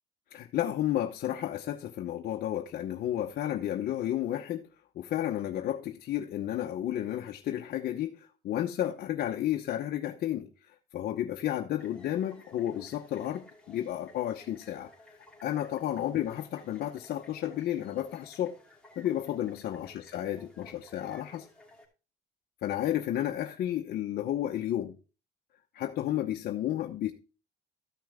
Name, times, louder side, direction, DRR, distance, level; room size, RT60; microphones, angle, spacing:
voice 1, 0.3-4.7 4.9-14.9 15.4-18.6 19.0-21.5 22.6-25.0 25.7-27.1, left 12 dB, 65° left, 0.9 m, -32 dB
sound 1, 11.8-21.9, left 2 dB, 5° left, 2.7 m, -56 dB
13.5 x 6.0 x 3.4 m
cardioid pair, 110°, 17 cm